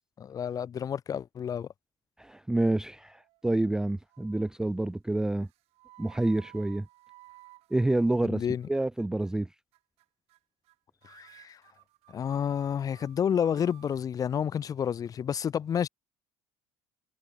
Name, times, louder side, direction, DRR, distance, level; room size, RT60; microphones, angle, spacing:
voice 1, 0.2-1.7 8.2-8.7 11.0-11.6 12.1-15.9, left 8 dB, 35° left, 1.3 m, -30 dB
voice 2, 2.2-5.5 6.0-6.9 7.7-9.5, right 2 dB, 5° right, 0.4 m, -28 dB
sound 1, 3.1-3.7 4.1-4.6 5.4-8.7 9.0-9.3 9.7-10.0 10.3-10.4 10.6-10.8 11.0-14.0, right 19 dB, 70° right, 4.3 m, -56 dB
cardioid pair, 145°, 11 cm